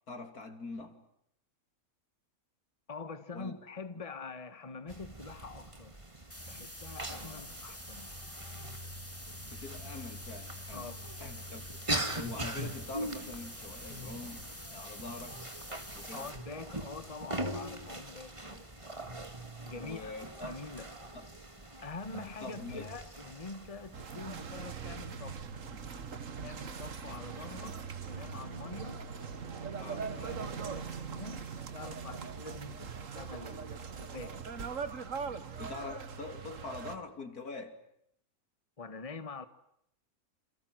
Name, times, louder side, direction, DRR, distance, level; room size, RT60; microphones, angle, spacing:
voice 1, 0.1-1.0 3.3-3.5 7.2-7.5 9.5-10.9 11.2-11.6 12.1-15.4 15.9-16.3 19.7-20.6 21.1-21.3 22.4-22.9 29.8-30.1 35.6-37.8, left 3 dB, 90° left, 3.7 m, -44 dB
voice 2, 2.9-6.0 6.5-8.1 10.7-11.0 16.1-18.7 19.6-20.1 20.5-20.9 21.8-25.4 26.4-27.8 28.1-29.0 29.9-34.4 38.8-39.4, left 4 dB, 25° left, 1.6 m, -45 dB
sound 1, 4.9-24.6, right 1 dB, 20° right, 2.2 m, -42 dB
sound 2, 6.3-16.3, equal, 10° left, 4.0 m, -48 dB
sound 3, 23.9-37.0, right 6 dB, 60° right, 1.9 m, -41 dB
28.0 x 27.0 x 7.9 m
omnidirectional pair, 1.5 m